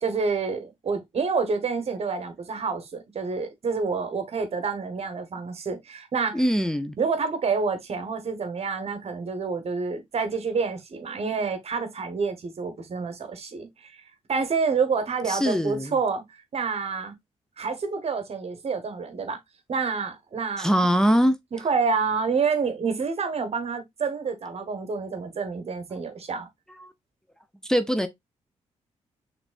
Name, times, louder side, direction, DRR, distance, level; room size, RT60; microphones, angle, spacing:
voice 1, 0.0-6.4 7.0-14.0 14.3-17.1 17.6-19.4 19.7-21.1 21.5-26.5, right 5 dB, 55° right, 1.2 m, -28 dB
voice 2, 6.3-6.9 15.3-16.0 20.6-21.4 26.8-26.9 27.6-28.1, equal, 5° left, 0.6 m, -22 dB
5.9 x 3.2 x 2.4 m
cardioid pair, 65°, 13 cm